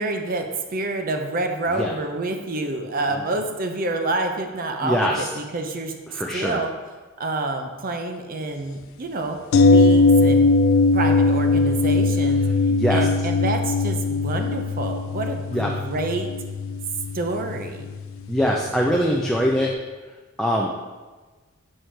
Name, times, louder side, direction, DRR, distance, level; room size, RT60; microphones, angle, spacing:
voice 1, 0.0-6.7 7.2-10.4 10.9-12.4 12.9-16.3 17.1-17.8, right 2 dB, 45° right, 4 dB, 0.7 m, -28 dB
voice 2, 4.8-5.3 6.1-6.6 12.7-13.1 15.5-15.7 18.3-19.7 20.4-20.7, equal, ahead, -2 dB, 0.4 m, -22 dB
sound 1, 9.5-19.4 19.7-19.8, left 3 dB, 65° left, 0.4 m, -20 dB
6.5 x 4.3 x 4.5 m, 1.3 s
head